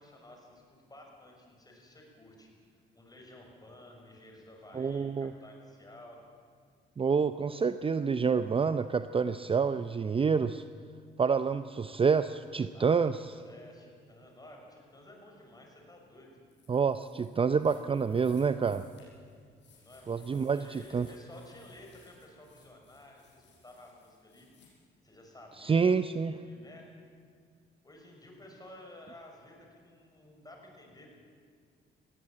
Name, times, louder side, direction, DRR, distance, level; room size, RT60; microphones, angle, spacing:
voice 1, 0.0-2.5 2.9-6.2 12.7-16.3 19.8-24.5 25.0-25.9 26.4-26.9 27.8-31.1, left 1 dB, 20° left, 1 dB, 6.2 m, -53 dB
voice 2, 4.7-5.3 7.0-10.6 11.2-13.2 16.7-18.8 20.1-21.1 25.6-26.4, right 5 dB, 25° right, 12 dB, 0.6 m, -28 dB
sound 1, 16.5-24.7, left 5 dB, 65° left, 7.7 m, -62 dB
20.5 x 15.5 x 8.9 m, 2.1 s
cardioid pair, 90°, 20 cm